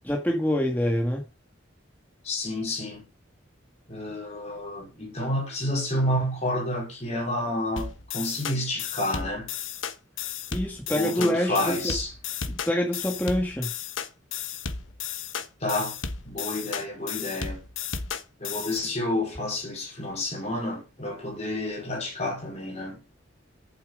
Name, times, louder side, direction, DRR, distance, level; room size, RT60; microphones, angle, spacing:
voice 1, 0.1-1.2 10.5-11.9 12.5-13.7, equal, 10° left, 1.9 m, -26 dB
voice 2, 2.2-3.1 3.9-9.5 10.9-12.1 15.6-16.0 16.2-17.6 18.4-23.1, left 1 dB, 35° left, 4.6 m, -30 dB
sound 1, 7.8-18.8, left 6 dB, 75° left, 1.2 m, -34 dB
8.9 x 7.6 x 5.1 m
head